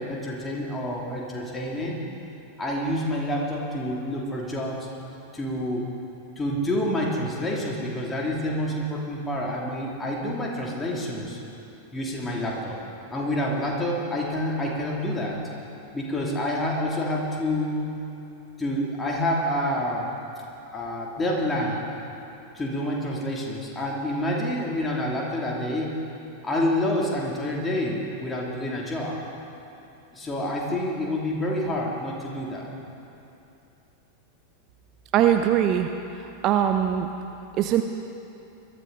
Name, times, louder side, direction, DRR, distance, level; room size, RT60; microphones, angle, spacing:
voice 1, 0.0-2.0 2.6-4.9 5.3-5.9 6.4-11.4 11.9-12.8 13.1-15.4 15.9-17.9 18.6-20.1 20.7-21.8 22.5-25.9 26.4-29.2 30.1-32.7, left 1 dB, 15° left, -3 dB, 2.8 m, -28 dB
voice 2, 35.1-35.9 36.2-37.1 37.6-37.8, right 10 dB, 35° right, 6 dB, 0.6 m, -21 dB
22.0 x 13.5 x 4.0 m, 2.9 s
figure-of-eight pair, 90°, 0 cm